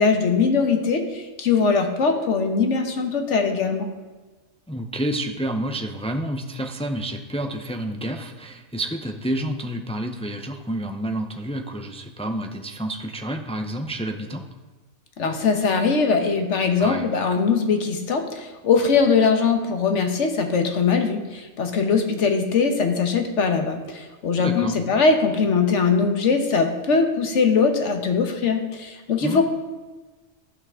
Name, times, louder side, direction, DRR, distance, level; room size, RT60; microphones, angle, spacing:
voice 1, 0.0-3.9 15.2-29.4, left 5 dB, 70° left, 5 dB, 1.4 m, -21 dB
voice 2, 4.7-14.4 16.8-17.0 24.4-24.7 29.2-29.4, right 1 dB, 10° left, 5 dB, 0.3 m, -29 dB
14.5 x 5.8 x 3.6 m, 1.3 s
omnidirectional pair, 1.3 m